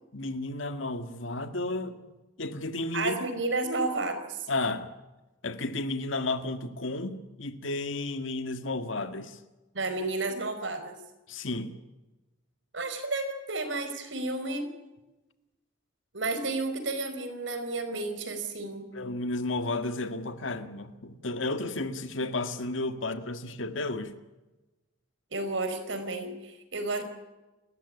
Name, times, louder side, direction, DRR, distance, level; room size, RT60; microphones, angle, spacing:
voice 1, 0.1-2.0 2.4-3.2 4.5-4.9 5.4-9.4 11.3-11.8 18.9-24.1, left 2 dB, 80° left, 1.8 m, -32 dB
voice 2, 2.9-4.5 9.7-11.0 12.7-14.7 16.1-18.9 25.3-27.0, right 2 dB, 70° right, 4.8 m, -32 dB
29.5 x 14.0 x 9.9 m
head